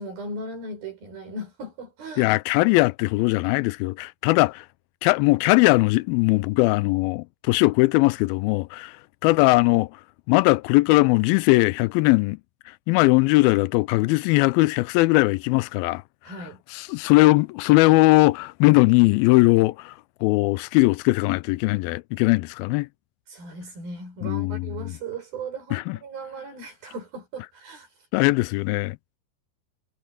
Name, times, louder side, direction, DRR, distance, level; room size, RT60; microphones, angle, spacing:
voice 1, 0.0-2.4 16.2-16.6 23.3-27.9, right 2 dB, 75° right, 8.5 m, -37 dB
voice 2, 2.2-4.7 5.0-8.9 9.2-9.9 10.3-12.4 12.9-16.0 16.7-19.9 20.2-22.9 24.2-24.7 25.7-26.0 28.1-29.2, left 22 dB, 90° left, 2.4 m, -20 dB
omnidirectional pair, 4.2 m